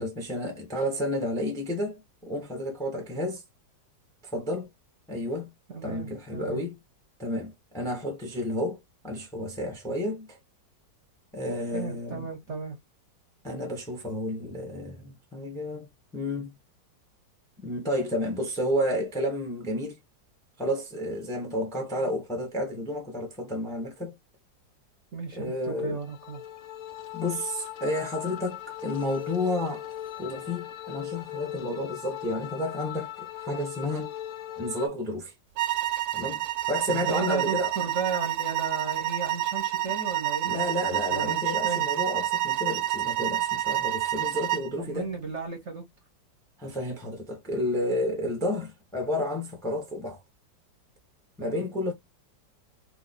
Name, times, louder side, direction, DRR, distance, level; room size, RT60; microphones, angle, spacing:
voice 1, 0.0-3.4 4.3-4.7 5.1-5.5 5.8-6.8 7.2-8.8 9.0-10.4 11.3-12.3 13.4-15.9 16.1-16.5 17.6-20.0 20.6-24.1 25.3-26.0 27.1-29.8 30.2-34.1 34.6-35.3 36.1-37.7 40.4-45.1 46.6-50.2 51.4-51.9, left 1 dB, 5° left, 0.6 m, -31 dB
voice 2, 5.7-6.6 11.7-12.7 25.1-26.4 36.9-40.7 41.1-41.9 44.8-45.8 51.4-51.7, right 4 dB, 50° right, 1.0 m, -34 dB
sound 1, 26.0-34.9, left 12 dB, 70° left, 0.7 m, -39 dB
sound 2, 35.6-44.7, right 13 dB, 75° right, 1.2 m, -28 dB
3.0 x 2.6 x 4.0 m
omnidirectional pair, 2.0 m